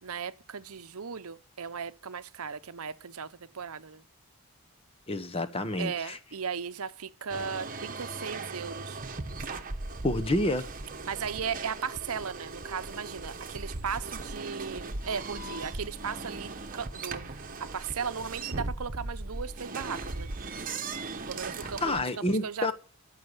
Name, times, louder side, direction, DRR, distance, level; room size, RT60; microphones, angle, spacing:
voice 1, 0.0-4.0 5.8-9.0 11.1-20.3 21.3-22.7, right 6 dB, 75° right, 0.8 m, -37 dB
voice 2, 5.1-6.2 10.0-10.7 21.8-22.7, left 1 dB, 25° left, 1.0 m, -28 dB
sound 1, 7.3-22.0, right 3 dB, 40° right, 1.1 m, -38 dB
14.5 x 6.5 x 8.1 m
head